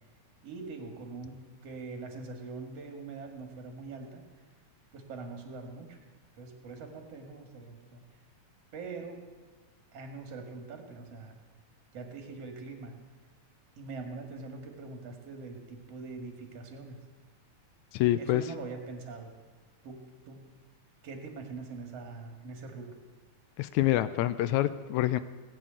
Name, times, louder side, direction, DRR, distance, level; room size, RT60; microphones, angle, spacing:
voice 1, 0.4-4.5 4.9-6.0 6.3-8.0 8.7-9.2 9.9-11.4 11.9-13.0 13.8-17.0 18.2-19.3 19.8-20.4 21.0-22.9, right 3 dB, 55° right, 3 dB, 2.9 m, -43 dB
voice 2, 17.9-18.4 23.6-25.2, left 14 dB, 80° left, 13 dB, 1.9 m, -26 dB
18.5 x 6.4 x 8.8 m, 1.3 s
omnidirectional pair, 3.5 m